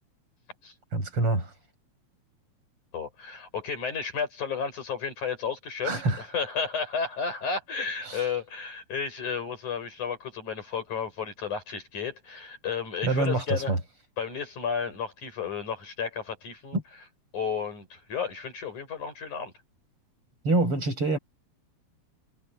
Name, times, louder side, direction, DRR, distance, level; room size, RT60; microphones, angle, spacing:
voice 1, 0.9-1.5 5.9-6.2 8.1-8.2 13.0-13.8 16.7-16.8 20.5-21.2, right 2 dB, 45° right, 8.4 m, -25 dB
voice 2, 2.9-13.7 14.2-16.8 17.3-19.5, left 6 dB, 90° left, 7.8 m, -32 dB
omnidirectional pair, 3.4 m